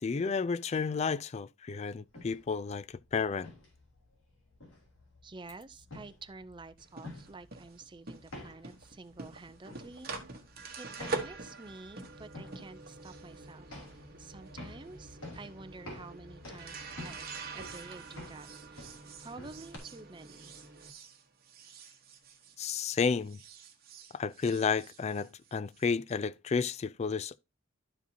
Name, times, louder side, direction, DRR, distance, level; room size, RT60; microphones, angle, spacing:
voice 1, 0.0-3.5 22.6-23.4 24.1-27.4, left 5 dB, 30° left, 0.3 m, -32 dB
sound 1, 2.0-19.8, left 2 dB, 90° left, 3.5 m, -51 dB
voice 2, 5.2-10.1 10.8-13.8 14.2-17.3 17.5-20.5, right 3 dB, 25° right, 0.5 m, -49 dB
sound 2, 6.8-23.0 23.2-25.9, right 3 dB, 45° right, 1.3 m, -45 dB
12.0 x 4.9 x 2.7 m
head